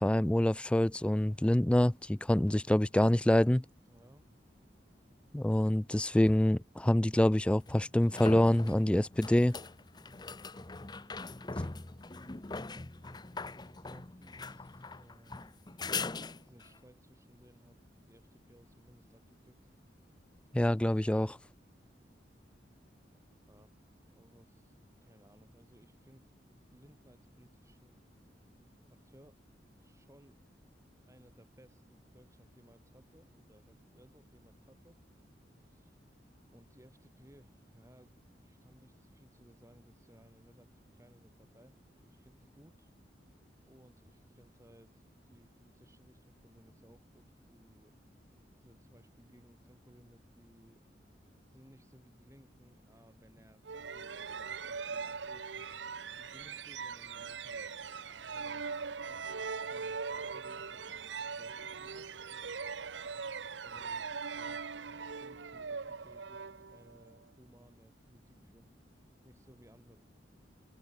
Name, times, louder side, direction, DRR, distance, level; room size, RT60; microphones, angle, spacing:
voice 1, 0.0-3.6 5.3-9.6 20.5-21.4, left 1 dB, 5° left, 0.3 m, -26 dB
voice 2, 3.9-4.3 12.8-15.5 16.4-19.6 23.1-23.7 24.1-26.3 26.7-28.0 28.9-29.4 29.8-30.4 31.1-35.0 35.6-36.0 36.5-42.9 43.6-48.0 48.6-50.9 51.5-55.7 56.2-57.8 58.2-62.1 63.6-68.7 69.2-70.0, equal, 15° right, 7.6 m, -62 dB
sound 1, 6.3-6.4 7.7-16.8 20.2-20.3, left 3 dB, 25° left, 0.8 m, -42 dB
sound 2, 53.6-67.1, right 5 dB, 90° right, 0.9 m, -41 dB
head